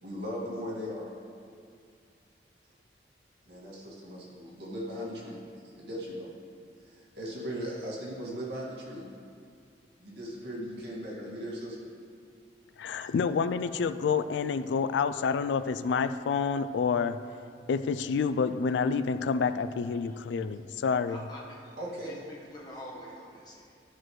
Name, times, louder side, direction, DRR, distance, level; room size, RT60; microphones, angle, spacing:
voice 1, 0.0-1.1 3.5-5.3 5.8-6.3 6.8-9.0 10.0-11.9 12.9-13.1 21.8-22.2, equal, 70° right, -5 dB, 2.0 m, -38 dB
voice 2, 12.8-17.2 17.7-21.2, left 5 dB, 85° left, 12 dB, 0.3 m, -28 dB
voice 3, 21.1-21.8 22.0-23.7, left 1 dB, 25° left, -4 dB, 1.2 m, -46 dB
12.5 x 6.2 x 3.1 m, 2.3 s
head